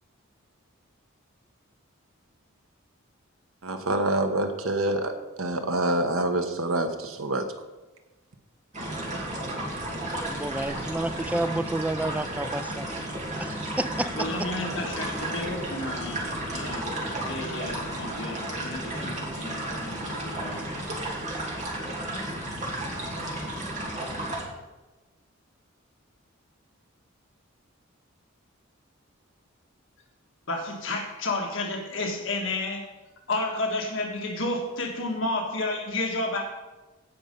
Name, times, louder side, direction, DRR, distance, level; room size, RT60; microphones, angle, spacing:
voice 1, 3.6-7.5, right 1 dB, 80° right, 1.2 m, -26 dB
sound 1, 8.7-24.4, right 1 dB, 35° right, 2.4 m, -33 dB
voice 2, 10.2-12.9 13.1-14.5, right 2 dB, 5° right, 0.3 m, -30 dB
voice 3, 14.2-16.2 16.5-20.8 30.5-32.9 33.3-36.4, left 2 dB, 65° left, 1.5 m, -31 dB
16.0 x 5.4 x 5.2 m
head